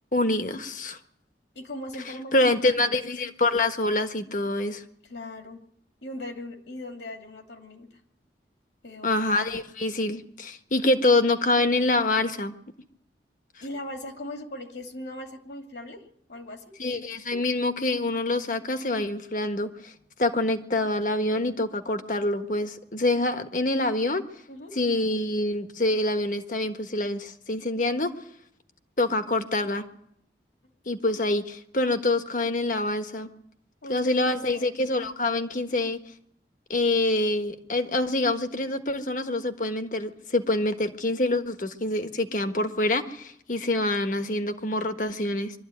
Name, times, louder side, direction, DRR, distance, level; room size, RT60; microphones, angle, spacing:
voice 1, 0.1-1.0 2.3-4.8 9.0-12.5 16.8-19.9 20.2-24.2 24.8-28.1 29.0-29.8 30.9-33.3 33.9-36.0 36.7-45.5, left 2 dB, 45° left, 7 dB, 1.4 m, -26 dB
voice 2, 1.5-3.0 5.0-5.6 6.0-7.9 8.8-9.1 13.6-16.0 16.3-16.6 24.5-24.7 33.8-34.7, left 1 dB, 80° left, 3 dB, 2.6 m, -39 dB
23.5 x 13.0 x 9.3 m, 0.74 s
head